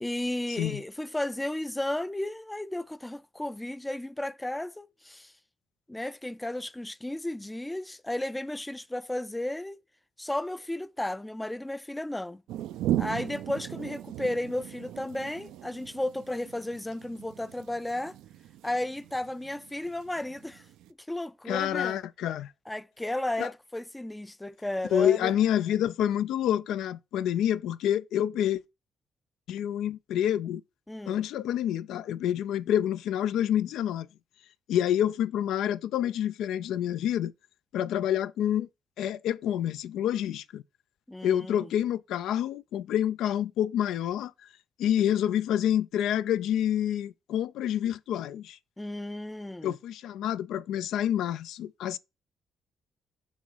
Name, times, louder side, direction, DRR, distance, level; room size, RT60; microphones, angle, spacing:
voice 1, 0.0-5.3 5.9-9.8 10.2-12.4 13.0-18.2 18.6-20.6 21.1-22.0 22.7-25.3 30.9-31.2 41.1-41.7 48.8-49.7, left 1 dB, 10° left, 0.4 m, -34 dB
sound 1, 12.5-20.9, right 12 dB, 90° right, 0.4 m, -37 dB
voice 2, 21.5-22.5 23.4-23.5 24.9-28.6 29.5-30.6 31.1-34.1 34.7-37.3 37.7-38.7 39.0-40.6 41.2-44.3 44.8-48.6 49.6-52.0, left 10 dB, 85° left, 0.3 m, -28 dB
6.0 x 3.1 x 5.4 m
cardioid pair, 90°, 0 cm